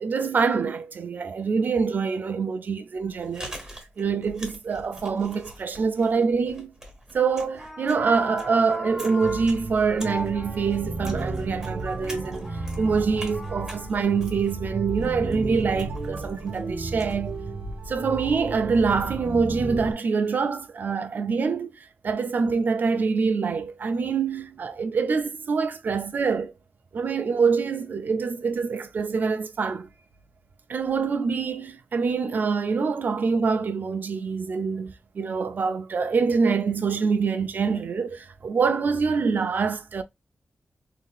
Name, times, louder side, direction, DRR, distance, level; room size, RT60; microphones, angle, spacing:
voice 1, 0.0-3.5 4.0-6.7 7.1-12.5 12.8-17.4 17.9-21.7 22.0-26.5 26.9-29.9 30.7-40.0, right 5 dB, 60° right, 0.4 m, -25 dB
Chewing mastication, 3.0-18.1, equal, 15° right, 1.4 m, -45 dB
sound 1, 7.4-13.9, left 1 dB, 10° left, 0.5 m, -39 dB
sound 2, 9.2-19.9, right 2 dB, 90° right, 0.8 m, -33 dB
3.8 x 2.7 x 2.3 m
wide cardioid pair, 135°, 3 cm